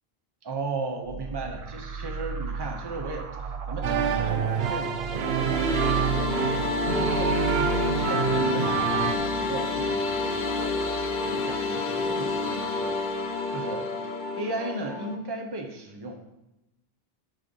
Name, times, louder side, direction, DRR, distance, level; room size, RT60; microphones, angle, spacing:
voice 1, 0.4-3.3 3.7-10.9 11.2-13.0 13.5-13.9 14.4-16.2, right 2 dB, 25° right, 3 dB, 0.9 m, -36 dB
sound 1, 1.1-12.4, right 5 dB, 45° right, 0.5 m, -36 dB
sound 2, 3.8-9.2, right 7 dB, 75° right, 0.9 m, -27 dB
sound 3, 5.0-15.2, left 4 dB, 55° left, 0.9 m, -29 dB
10.0 x 4.1 x 5.4 m, 0.93 s
omnidirectional pair, 1.0 m